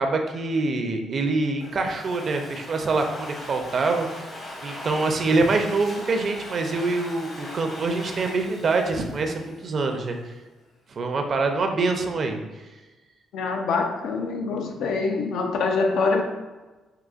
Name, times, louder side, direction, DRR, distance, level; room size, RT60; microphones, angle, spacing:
voice 1, 0.0-4.3 4.6-10.2 10.9-12.4, right 3 dB, 50° right, 4 dB, 0.4 m, -25 dB
Domestic sounds home sounds, 1.6-10.0, left 1 dB, 40° left, 0.9 m, -40 dB
voice 2, 13.3-16.2, left 4 dB, 75° left, 3 dB, 0.4 m, -24 dB
3.8 x 2.8 x 2.4 m, 1.2 s
cardioid pair, 90°, 0 cm